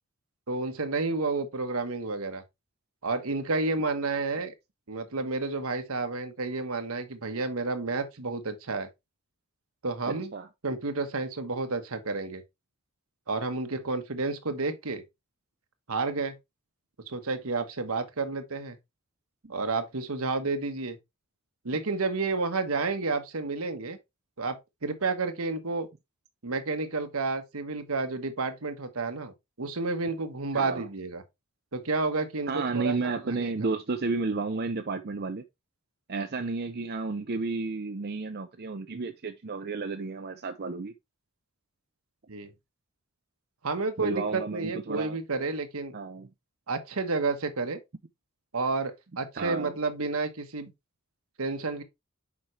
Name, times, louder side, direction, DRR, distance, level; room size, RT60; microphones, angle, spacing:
voice 1, 0.5-2.4 3.0-4.5 4.9-8.9 9.8-10.3 10.6-12.4 13.3-15.0 15.9-16.4 17.1-18.8 19.5-21.0 21.6-24.0 24.4-25.9 26.4-31.2 31.7-33.0 33.4-33.5 42.3-42.5 43.6-46.0 46.7-47.8 48.5-50.7 51.4-51.8, right 3 dB, 75° right, 1.2 m, -30 dB
voice 2, 10.1-10.5 19.4-19.5 30.5-30.9 32.5-35.4 36.1-40.9 44.0-45.2 45.9-46.3 49.3-49.7, right 3 dB, 45° right, 0.6 m, -32 dB
7.2 x 5.3 x 3.2 m
head